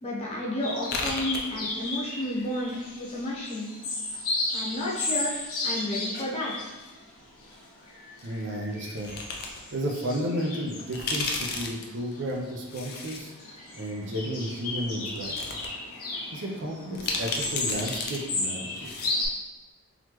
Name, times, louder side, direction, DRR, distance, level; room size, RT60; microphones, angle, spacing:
voice 1, 0.0-3.7 4.5-6.5, left 1 dB, 30° left, -5 dB, 0.9 m, -32 dB
sound 1, 0.6-19.3, left 2 dB, 80° left, 1.2 m, -35 dB
sound 2, 0.8-2.1 2.3-3.3 4.1-5.1 5.4-6.9 8.2-8.3 8.9-9.6 10.0-10.1 10.7-13.2 13.6-13.7 14.5-14.6 15.0-15.7 16.0-16.1 16.9-18.2 18.4-18.5 18.7-19.2, left 3 dB, 45° left, 0.5 m, -34 dB
voice 2, 8.2-9.1 9.7-15.5 16.3-18.9, equal, 55° right, -1 dB, 0.6 m, -33 dB
3.9 x 3.0 x 3.0 m, 1.2 s
head